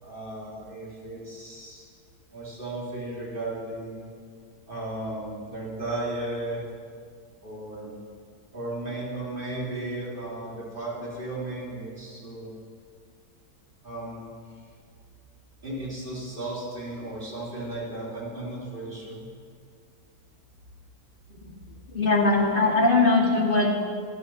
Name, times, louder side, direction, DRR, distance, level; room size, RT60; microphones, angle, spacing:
voice 1, 0.0-1.9 2.3-4.1 4.7-6.6 7.4-7.9 8.5-12.5 13.8-14.3 15.6-19.3, right 2 dB, 35° right, -6 dB, 3.4 m, -35 dB
voice 2, 21.9-23.8, left 3 dB, 35° left, -2 dB, 2.0 m, -21 dB
12.0 x 10.5 x 6.2 m, 2.1 s
omnidirectional pair, 1.6 m